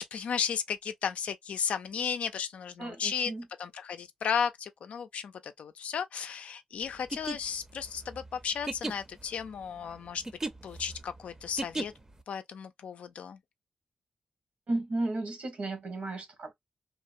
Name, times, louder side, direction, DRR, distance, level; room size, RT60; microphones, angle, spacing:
voice 1, 0.0-3.3 3.6-10.2 10.6-11.9 12.3-13.4, left 7 dB, 85° left, 0.4 m, -34 dB
voice 2, 2.8-3.4 14.7-16.5, right 2 dB, 75° right, 1.3 m, -34 dB
sound 1, 7.0-12.2, right 2 dB, 25° right, 0.6 m, -37 dB
2.9 x 2.0 x 2.5 m
cardioid pair, 60°, 2 cm